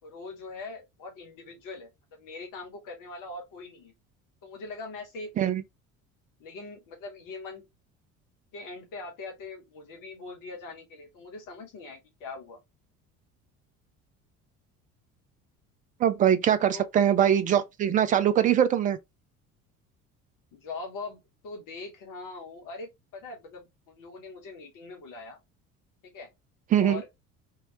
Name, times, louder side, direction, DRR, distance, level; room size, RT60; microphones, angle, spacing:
voice 1, 0.0-3.9 4.4-5.5 6.4-7.6 8.5-12.6 16.7-16.9 20.5-25.4 26.0-26.3 26.8-27.1, left 3 dB, 50° left, 1.1 m, -42 dB
voice 2, 16.0-19.0 26.7-27.0, right 9 dB, 20° right, 0.4 m, -22 dB
2.8 x 2.8 x 3.0 m
figure-of-eight pair, 60°, 42 cm